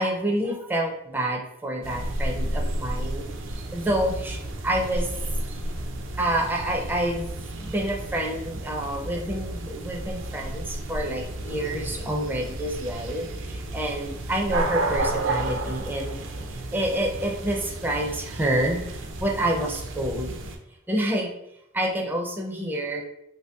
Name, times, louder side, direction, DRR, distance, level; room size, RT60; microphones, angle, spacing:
voice 1, 0.0-3.2 3.7-4.4 4.6-5.1 6.2-16.2 16.7-18.8 19.2-20.4 20.9-21.3 21.7-23.0, right 1 dB, 10° right, 0 dB, 0.4 m, -28 dB
sound 1, 1.8-20.6, right 1 dB, 75° right, 0.5 m, -32 dB
3.0 x 2.7 x 3.3 m, 0.79 s
head